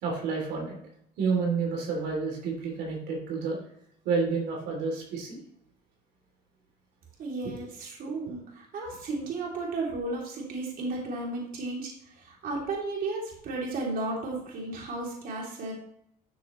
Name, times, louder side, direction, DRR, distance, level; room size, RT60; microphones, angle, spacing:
voice 1, 0.0-0.8 1.2-3.6 4.0-5.4, right 4 dB, 80° right, 0 dB, 3.0 m, -29 dB
voice 2, 7.2-11.9 12.2-15.7, right 2 dB, 60° right, -2 dB, 3.0 m, -34 dB
12.5 x 6.4 x 3.1 m, 0.71 s
cardioid pair, 110°, 17 cm